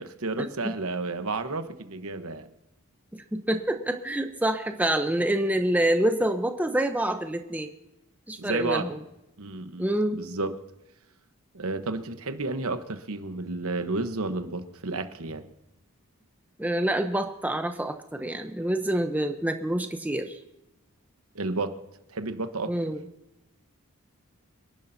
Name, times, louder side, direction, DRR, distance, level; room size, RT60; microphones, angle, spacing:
voice 1, 0.0-2.5 8.4-8.9 9.4-9.9 10.1-10.6 11.5-15.5 21.3-21.8 22.1-22.7, right 3 dB, 75° right, 9 dB, 1.1 m, -31 dB
voice 2, 3.1-7.7 8.3-9.0 9.8-10.2 16.6-20.4 22.7-23.0, right 1 dB, 5° right, 6 dB, 0.7 m, -27 dB
27.0 x 11.0 x 2.7 m, 0.93 s
head